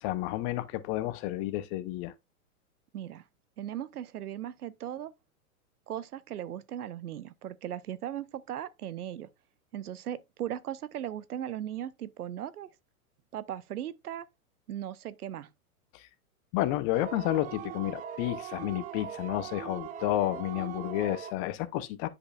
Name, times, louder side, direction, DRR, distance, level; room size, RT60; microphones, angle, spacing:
voice 1, 0.0-2.1 15.9-16.1 16.5-22.1, left 15 dB, 35° left, 0.7 m, -31 dB
voice 2, 2.9-3.2 3.6-5.1 5.9-9.3 9.7-12.7 13.3-14.3 14.7-15.5, right 11 dB, 85° right, 0.8 m, -38 dB
sound 1, 16.9-21.3, right 8 dB, 20° right, 0.5 m, -40 dB
9.8 x 5.3 x 2.4 m
hypercardioid pair, 115°, 44 cm